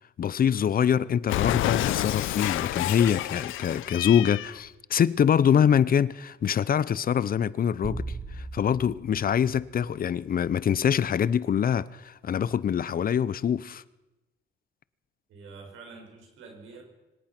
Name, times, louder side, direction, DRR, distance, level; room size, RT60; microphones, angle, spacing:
voice 1, 0.2-8.0 8.4-13.8, left 8 dB, 45° left, 0.7 m, -24 dB
Cat, 1.3-4.6, left 15 dB, 85° left, 0.7 m, -29 dB
sound 1, 7.8-10.3, right 2 dB, 35° right, 4.4 m, -39 dB
voice 2, 15.3-16.8, right 4 dB, 85° right, 6.3 m, -46 dB
25.0 x 17.5 x 6.0 m
cardioid pair, 90°, 20 cm